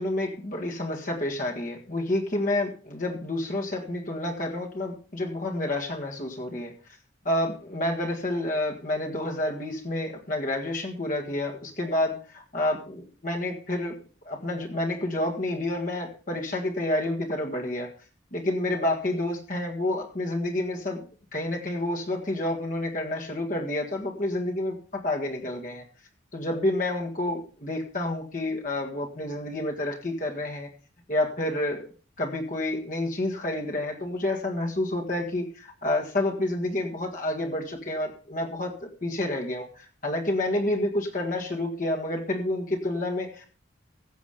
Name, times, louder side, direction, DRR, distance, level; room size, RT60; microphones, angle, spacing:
voice 1, 0.0-6.7 7.3-14.0 14.3-17.9 18.3-21.0 21.3-25.8 26.3-30.7 31.1-31.9 32.2-43.5, left 1 dB, 45° left, 1 dB, 1.7 m, -29 dB
15.5 x 7.3 x 5.1 m, 0.38 s
head